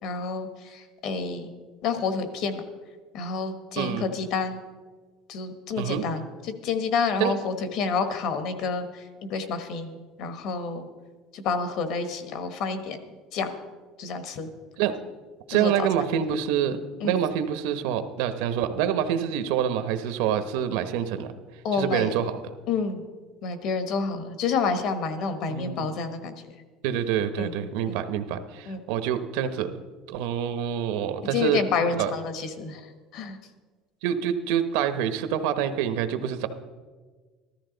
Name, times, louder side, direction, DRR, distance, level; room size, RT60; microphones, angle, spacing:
voice 1, 0.0-1.5 1.8-2.6 3.1-4.6 5.3-10.9 11.3-13.0 13.3-13.5 14.0-14.5 15.5-16.1 17.0-17.2 21.6-22.1 22.7-23.0 23.4-26.4 27.4-27.6 27.8-28.0 28.7-28.8 31.3-33.4, left 5 dB, 50° left, 9 dB, 1.2 m, -29 dB
voice 2, 3.8-4.1 5.8-6.0 7.2-7.3 14.8-14.9 15.5-21.3 21.7-22.4 25.5-25.9 26.8-29.7 30.1-31.6 32.0-32.1 34.0-36.5, right 9 dB, 75° right, 10 dB, 0.9 m, -26 dB
14.5 x 13.0 x 3.9 m, 1.4 s
cardioid pair, 165°, 0 cm